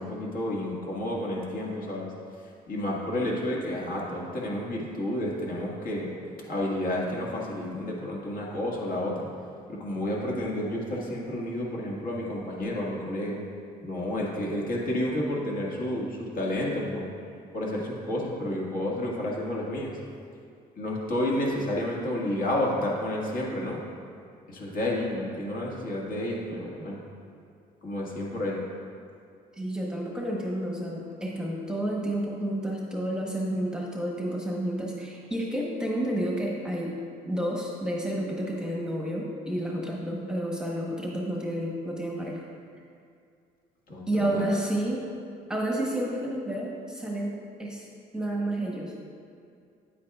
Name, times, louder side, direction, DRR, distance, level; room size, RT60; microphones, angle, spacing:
voice 1, 0.0-2.1 2.4-6.1 6.5-9.3 9.7-13.4 13.8-17.1 17.5-20.0 20.8-23.8 24.5-27.0 27.8-28.6 43.9-44.6, left 1 dB, 55° left, -3 dB, 1.8 m, -30 dB
voice 2, 29.6-37.0 37.2-42.4 44.1-45.0 45.5-47.3 47.6-47.9 48.1-49.0, right 1 dB, 5° right, -2 dB, 1.0 m, -30 dB
9.2 x 8.4 x 2.4 m, 2.4 s
cardioid pair, 110°, 17 cm